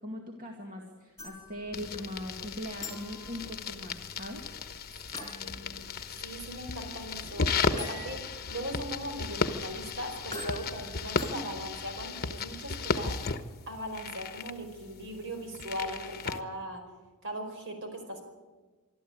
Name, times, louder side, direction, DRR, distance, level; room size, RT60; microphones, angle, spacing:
voice 1, 0.0-4.5, left 1 dB, 40° right, 1 dB, 2.2 m, -40 dB
sound 1, 1.2-11.8, left 2 dB, 15° left, 6.2 m, -48 dB
sound 2, 1.7-16.4, left 4 dB, 45° left, 1.1 m, -35 dB
voice 2, 5.1-6.0 6.2-8.2 8.5-13.2 13.7-16.8 17.2-18.3, equal, 60° right, 5 dB, 4.8 m, -39 dB
24.5 x 13.0 x 8.8 m, 1.3 s
head